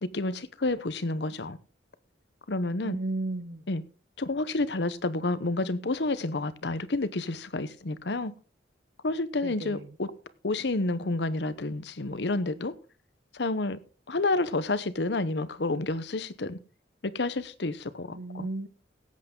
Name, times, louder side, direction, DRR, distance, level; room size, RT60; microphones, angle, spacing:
voice 1, 0.0-1.6 2.5-3.0 3.7-3.8 4.2-8.3 9.0-10.1 10.4-12.7 13.3-13.8 14.1-16.6 17.0-18.5, left 2 dB, 65° left, 0.9 m, -29 dB
voice 2, 2.8-3.6 9.4-9.8 18.1-18.7, right 2 dB, 65° right, 0.9 m, -34 dB
17.0 x 8.5 x 3.7 m
head